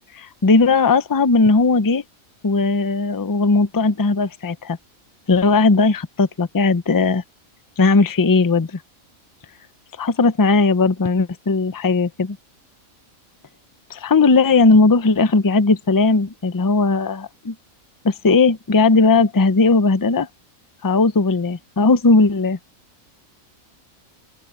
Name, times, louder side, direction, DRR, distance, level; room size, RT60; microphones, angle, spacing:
voice 1, 0.0-2.0 2.4-4.8 5.3-7.2 7.8-8.8 10.0-12.4 13.9-17.5 18.0-20.3 20.8-22.6, left 3 dB, 25° left, 0.5 m, -17 dB
open air
omnidirectional pair, 1.4 m